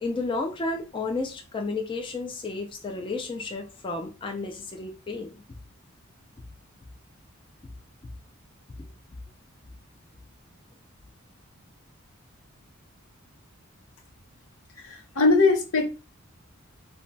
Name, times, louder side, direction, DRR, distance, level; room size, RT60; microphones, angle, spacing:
voice 1, 0.0-5.4 8.8-8.9, left 3 dB, 25° left, 2 dB, 0.4 m, -32 dB
voice 2, 14.8-15.9, left 3 dB, 80° left, 2 dB, 0.8 m, -21 dB
2.2 x 2.1 x 3.8 m, 0.30 s
head